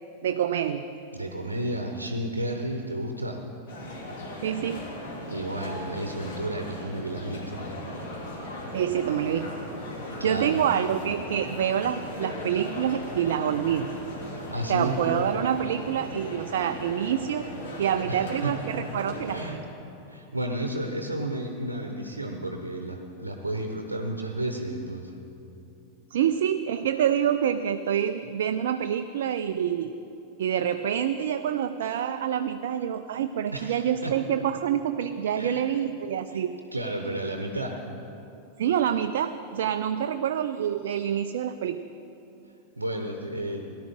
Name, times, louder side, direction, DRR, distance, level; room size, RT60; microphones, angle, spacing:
voice 1, 0.2-0.9 4.4-4.8 8.7-9.5 10.0-13.9 14.7-17.4 17.8-19.6 26.1-29.9 30.4-36.5 38.6-41.8, right 9 dB, 60° right, 9 dB, 0.4 m, -27 dB
voice 2, 1.1-3.4 5.3-7.6 10.2-10.6 14.3-15.0 18.1-18.5 19.3-19.6 20.1-25.2 33.5-34.2 35.4-35.6 36.7-37.8 42.8-43.7, right 1 dB, 80° right, 4 dB, 0.8 m, -32 dB
sound 1, 3.7-19.5, left 1 dB, 55° left, 2.7 m, -37 dB
18.0 x 11.5 x 3.7 m, 2.9 s
figure-of-eight pair, 90°, 0 cm